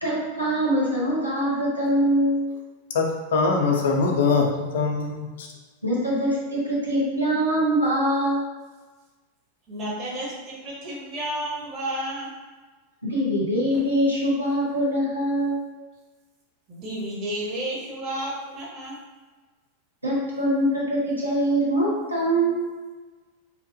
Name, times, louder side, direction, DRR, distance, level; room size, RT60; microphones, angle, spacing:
voice 1, 0.0-2.4 5.8-8.4 13.0-15.6 20.0-22.6, right 1 dB, 85° right, -7 dB, 0.8 m, -23 dB
voice 2, 3.3-4.5 4.7-5.5, left 4 dB, 60° left, 1 dB, 0.4 m, -22 dB
voice 3, 9.7-12.3 16.7-19.0, right 1 dB, 30° right, -4 dB, 0.8 m, -31 dB
2.7 x 2.1 x 2.6 m, 1.3 s
figure-of-eight pair, 90°, 0 cm